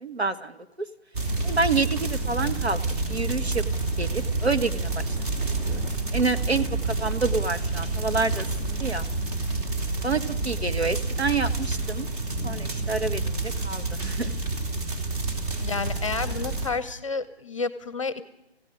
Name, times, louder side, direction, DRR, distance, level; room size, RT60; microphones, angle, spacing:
voice 1, 0.0-0.6 1.4-2.8 3.1-3.6 4.0-5.2 5.7-5.8 6.1-6.7 7.0-9.0 10.0-12.1 12.4-13.4 13.6-14.3, right 4 dB, 75° right, 8 dB, 1.6 m, -28 dB
sound 1, 1.1-16.7, right 3 dB, 35° right, 3.7 m, -28 dB
voice 2, 15.6-18.2, left 4 dB, 30° left, 16 dB, 0.8 m, -30 dB
29.0 x 16.0 x 6.4 m, 0.89 s
figure-of-eight pair, 145°, 32 cm